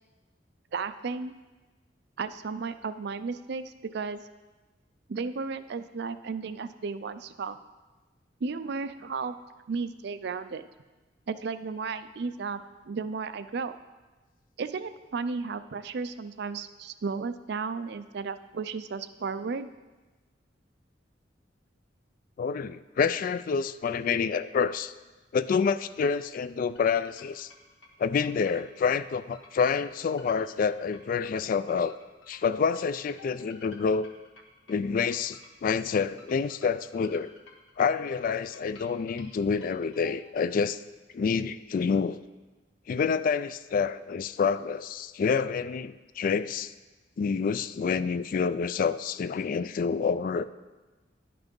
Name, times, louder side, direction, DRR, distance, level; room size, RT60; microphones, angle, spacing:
voice 1, 0.7-1.3 2.2-4.2 5.1-7.6 8.4-9.3 9.7-10.7 11.3-13.7 14.6-19.7, right 4 dB, 60° right, 12 dB, 0.4 m, -34 dB
voice 2, 22.4-24.9 25.3-27.5 28.0-31.9 32.3-34.1 34.7-37.3 37.8-40.8 41.1-42.2 42.9-46.7 47.2-50.5, left 5 dB, 50° left, 15 dB, 0.3 m, -28 dB
sound 1, 26.8-40.5, left 3 dB, 85° left, 1.5 m, -54 dB
10.5 x 5.9 x 5.3 m, 1.2 s
head